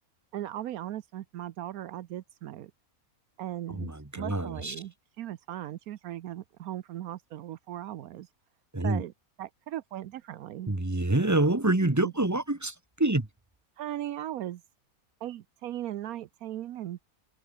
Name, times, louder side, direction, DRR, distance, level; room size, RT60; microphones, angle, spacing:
voice 1, 0.3-2.7 3.4-3.9 4.1-8.3 8.8-9.1 9.4-10.7 12.0-12.1 13.8-14.6 15.2-17.0, right 12 dB, 80° right, 1.2 m, -38 dB
voice 2, 3.7-4.7 8.7-9.0 10.7-13.3, right 2 dB, 10° right, 1.3 m, -27 dB
omnidirectional pair, 1.5 m